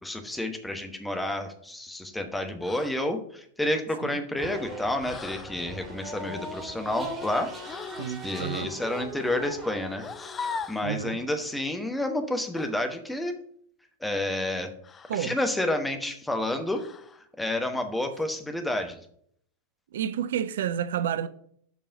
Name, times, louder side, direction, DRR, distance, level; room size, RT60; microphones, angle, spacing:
voice 1, 0.0-7.5 8.2-10.3 10.7-13.4 14.0-14.7 15.1-16.8 17.4-19.0, left 1 dB, 5° left, 1.1 m, -30 dB
sound 1, 2.6-3.0 5.0-5.6 7.6-8.2 9.9-10.9 12.5-12.8 14.8-15.3 16.7-17.2, left 5 dB, 20° left, 0.5 m, -39 dB
sound 2, 4.4-12.2, equal, 15° right, 2.1 m, -40 dB
voice 2, 8.0-8.7 10.8-11.2 15.1-15.4 19.9-21.3, right 9 dB, 60° right, 0.4 m, -30 dB
7.2 x 5.3 x 5.2 m
figure-of-eight pair, 90°, 0 cm